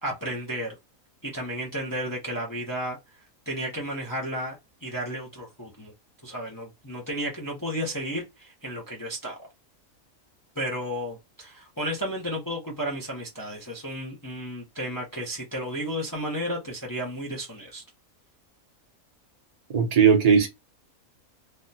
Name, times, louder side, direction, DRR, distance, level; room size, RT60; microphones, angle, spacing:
voice 1, 0.0-0.8 1.2-3.0 3.5-5.9 6.2-9.5 10.5-17.8, equal, 20° left, 0.6 m, -33 dB
voice 2, 19.7-20.5, right 6 dB, 35° right, 0.8 m, -18 dB
3.5 x 2.2 x 2.6 m
omnidirectional pair, 1.5 m